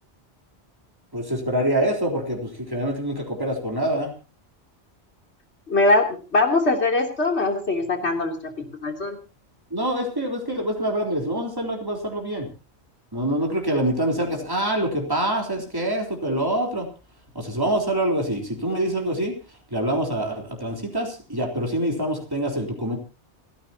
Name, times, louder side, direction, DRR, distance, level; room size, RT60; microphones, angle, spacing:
voice 1, 1.1-4.1 9.7-12.5 13.1-16.9 17.3-19.4 19.7-23.0, right 1 dB, 20° right, 1 dB, 3.8 m, -25 dB
voice 2, 5.7-8.5 8.8-9.2, left 2 dB, 75° left, 3 dB, 3.4 m, -21 dB
29.5 x 10.5 x 2.9 m, 0.33 s
omnidirectional pair, 1.1 m